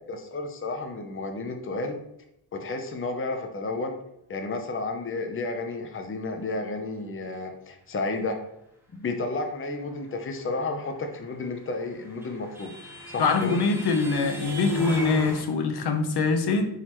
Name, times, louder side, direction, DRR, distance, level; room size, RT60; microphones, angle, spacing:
voice 1, 0.1-2.0 2.5-4.0 4.3-8.4 8.9-12.7 13.1-13.6, left 3 dB, 30° left, 4 dB, 0.8 m, -32 dB
sound 1, 11.6-15.4, left 1 dB, 5° right, 1.7 m, -34 dB
voice 2, 13.2-16.7, left 4 dB, 75° left, 5 dB, 1.0 m, -24 dB
9.7 x 4.1 x 3.1 m, 0.81 s
wide cardioid pair, 130°, 40 cm